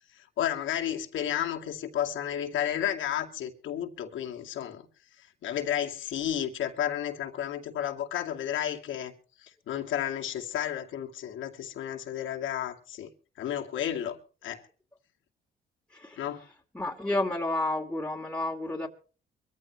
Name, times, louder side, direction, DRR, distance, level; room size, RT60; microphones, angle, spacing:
voice 1, 0.2-4.8 5.4-9.1 9.4-13.1 13.4-14.2 14.4-14.6 16.2-16.4, left 10 dB, 80° left, 2.4 m, -32 dB
voice 2, 15.9-16.3 16.7-18.9, left 2 dB, 5° left, 2.6 m, -31 dB
23.5 x 14.5 x 3.2 m
cardioid pair, 90°, 20 cm